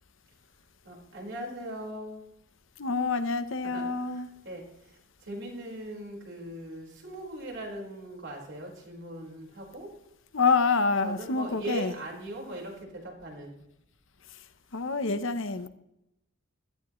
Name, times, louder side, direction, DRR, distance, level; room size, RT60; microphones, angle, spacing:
voice 1, 0.8-2.2 3.6-9.9 11.0-13.5, right 1 dB, 55° right, -1 dB, 5.0 m, -40 dB
voice 2, 2.8-4.3 10.3-11.9 14.7-15.7, left 4 dB, 60° left, 10 dB, 1.0 m, -27 dB
16.5 x 14.0 x 3.2 m, 0.82 s
head